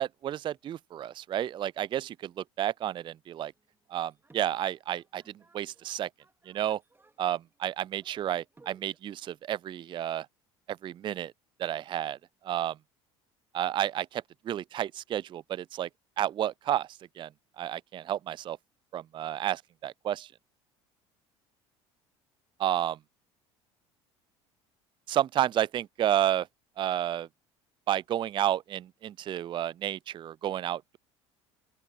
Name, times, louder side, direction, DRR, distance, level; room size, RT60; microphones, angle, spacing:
voice 1, 0.0-3.5 3.9-6.1 6.5-6.8 7.2-10.3 10.7-11.3 11.6-12.2 12.4-12.8 13.5-15.9 16.2-16.9 17.2-17.3 17.6-18.6 18.9-20.3 22.6-22.9 25.1-26.5 26.8-27.3 27.9-31.0, right 11 dB, 35° right, 0.4 m, -31 dB
sound 1, 3.5-9.0, right 3 dB, 15° right, 2.2 m, -62 dB
open air
hypercardioid pair, 70°, 14 cm